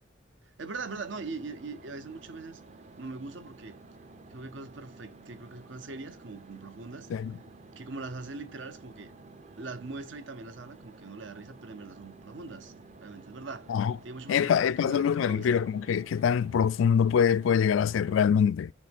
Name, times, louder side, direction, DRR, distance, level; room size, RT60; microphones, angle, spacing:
voice 1, 0.6-2.6 3.0-3.8 4.3-7.1 7.8-9.1 9.6-12.7 13.0-13.8 14.0-15.7, right 3 dB, 70° right, 0.8 m, -41 dB
sound 1, 0.7-18.2, right 3 dB, 35° right, 0.6 m, -52 dB
voice 2, 14.3-18.7, left 7 dB, 90° left, 0.3 m, -24 dB
6.6 x 3.2 x 5.2 m
head